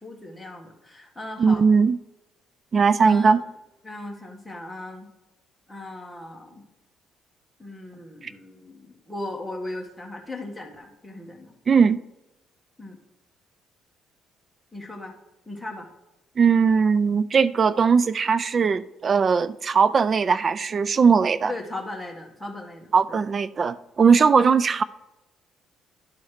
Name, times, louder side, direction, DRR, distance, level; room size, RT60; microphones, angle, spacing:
voice 1, 0.0-1.6 3.0-3.4 3.8-5.1 5.7-6.6 7.6-11.5 12.8-13.0 14.7-15.1 15.4-15.9 21.5-23.2, left 2 dB, 5° left, 1.7 m, -37 dB
voice 2, 1.4-2.0 2.7-3.4 11.7-12.0 16.4-21.5 22.9-24.8, right 5 dB, 35° right, 0.3 m, -19 dB
11.0 x 4.1 x 4.9 m
cardioid pair, 105°, 0 cm